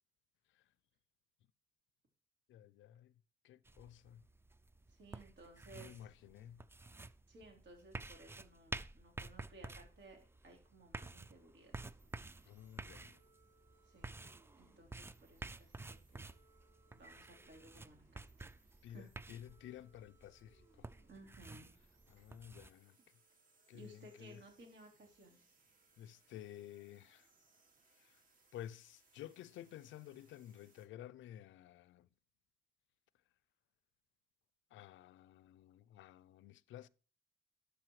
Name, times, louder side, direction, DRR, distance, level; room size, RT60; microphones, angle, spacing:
voice 1, 2.5-3.1 3.4-4.2 5.7-6.6 12.4-13.2 18.8-20.9 22.1-23.0 23.7-24.4 26.0-27.3 28.0-28.2 28.5-32.1 34.7-36.9, left 11 dB, 75° left, 0.5 m, -53 dB
sound 1, 3.7-22.7, right 3 dB, 10° right, 0.4 m, -51 dB
voice 2, 4.9-6.1 7.3-11.7 13.8-14.2 14.5-16.3 16.9-18.5 18.9-19.1 21.1-21.7 22.2-22.3 23.7-25.6, right 2 dB, 65° right, 3.7 m, -59 dB
sound 2, 11.7-30.9, right 3 dB, 45° right, 2.2 m, -72 dB
12.5 x 6.3 x 3.2 m
cardioid pair, 90°, 20 cm